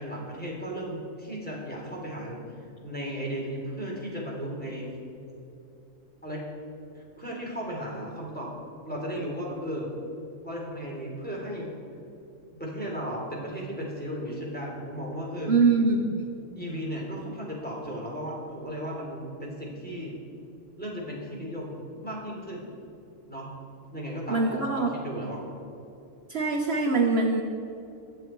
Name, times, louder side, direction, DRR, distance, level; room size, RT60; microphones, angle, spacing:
voice 1, 0.0-2.4 2.8-4.9 6.2-6.4 6.9-8.5 8.8-9.9 10.4-11.7 12.5-15.7 16.5-20.1 20.8-22.7 23.3-23.5 23.9-25.4, equal, 5° left, -4 dB, 3.4 m, -35 dB
voice 2, 15.5-16.2 24.3-24.9 26.3-27.4, right 3 dB, 55° right, 2 dB, 1.2 m, -23 dB
23.0 x 7.6 x 4.6 m, 2.7 s
omnidirectional pair, 1.3 m